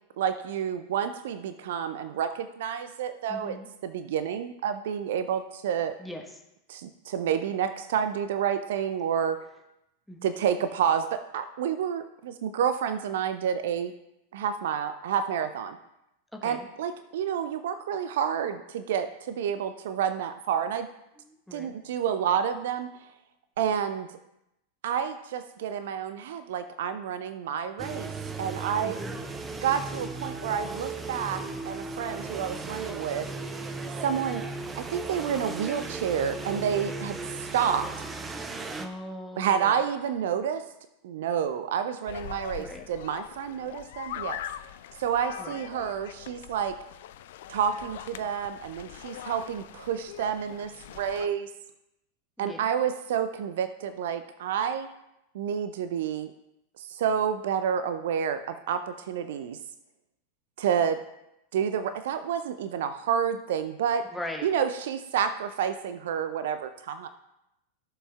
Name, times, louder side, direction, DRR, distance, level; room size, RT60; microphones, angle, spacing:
voice 1, 0.2-3.6 3.8-5.9 6.7-9.4 10.2-13.9 14.3-15.8 16.4-20.9 21.5-22.9 23.6-24.1 24.8-28.1 28.4-29.0 29.6-33.3 34.0-34.4 34.8-37.9 39.4-40.6 41.0-44.4 45.0-46.8 47.5-51.5 52.4-54.9 55.3-56.3 56.8-59.6 60.6-61.0 61.5-64.1 64.4-67.1, right 8 dB, 55° right, 11 dB, 0.5 m, -29 dB
voice 2, 3.3-3.7 6.0-6.2 10.1-10.3 16.4-16.7 21.5-21.7 28.8-29.2 38.8-39.7 42.6-42.8 45.4-45.5 52.4-52.6 64.1-64.5, left 1 dB, ahead, 1 dB, 1.2 m, -39 dB
sound 1, 27.8-38.9, right 3 dB, 15° right, 0.8 m, -36 dB
sound 2, 42.1-51.3, left 12 dB, 55° left, 0.4 m, -42 dB
14.5 x 6.8 x 2.3 m, 0.86 s
figure-of-eight pair, 90°, 0 cm